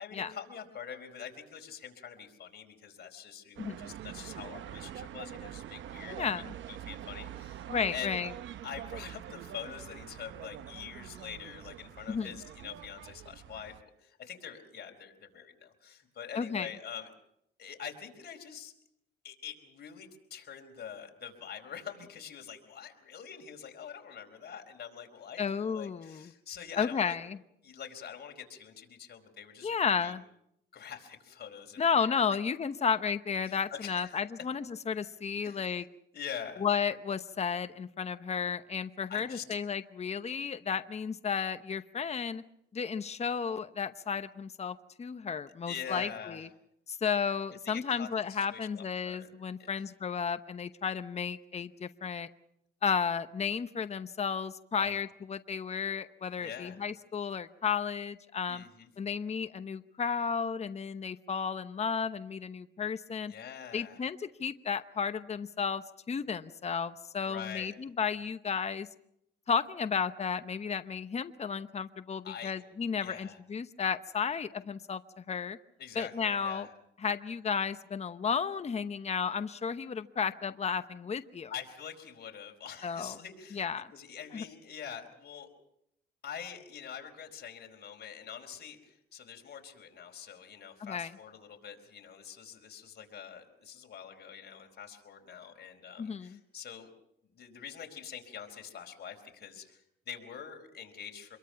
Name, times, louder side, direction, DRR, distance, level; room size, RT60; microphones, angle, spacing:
voice 1, 0.0-7.6 7.9-8.1 8.6-17.1 17.6-18.7 19.2-27.2 27.6-30.1 30.7-32.2 33.4-34.2 35.4-35.7 36.1-36.7 39.1-39.4 45.6-46.4 47.6-49.3 49.6-49.7 54.7-55.0 56.4-56.8 58.5-58.9 63.3-64.0 67.2-67.7 72.2-72.5 73.0-73.4 75.8-76.7 81.5-83.7 83.9-85.5 86.2-96.9 97.3-101.4, left 8 dB, 55° left, 3 dB, 4.5 m, -45 dB
sound 1, 3.6-13.8, right 11 dB, 70° right, 0.9 m, -45 dB
voice 2, 6.1-6.5 7.7-8.3 12.1-12.3 16.3-16.7 25.4-26.3 26.8-27.2 29.6-30.2 31.8-35.8 36.6-42.4 42.7-46.5 46.9-52.3 52.8-58.6 59.0-63.3 63.7-68.9 69.5-75.6 75.9-76.7 77.0-81.5 82.8-83.1 83.5-83.9 84.3-84.4 90.8-91.1 96.0-96.4, left 6 dB, 35° left, 11 dB, 1.0 m, -33 dB
26.0 x 22.5 x 5.8 m, 0.77 s
cardioid pair, 90°, 20 cm